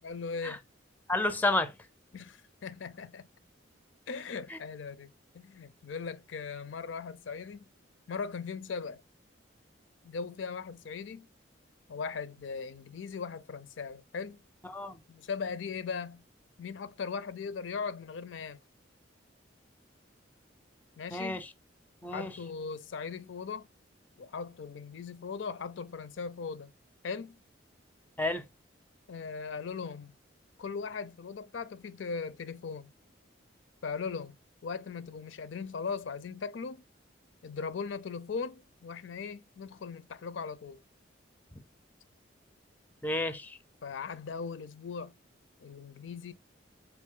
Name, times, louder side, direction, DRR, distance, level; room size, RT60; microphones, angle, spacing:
voice 1, 0.0-0.6 2.1-3.3 4.1-7.7 8.1-9.0 10.0-11.3 11.9-14.4 15.1-16.2 16.6-18.6 21.0-21.4 22.1-23.7 24.2-26.7 27.0-27.4 29.1-30.1 30.6-32.9 33.8-34.4 34.6-36.8 37.4-40.8 43.8-45.1 45.6-46.3, left 5 dB, 75° left, 0.5 m, -39 dB
voice 2, 1.1-1.7 4.5-4.6 14.7-15.0 21.1-21.4 22.0-22.3 28.2-28.4 43.0-43.6, left 2 dB, 10° left, 0.4 m, -30 dB
4.1 x 3.0 x 3.6 m
head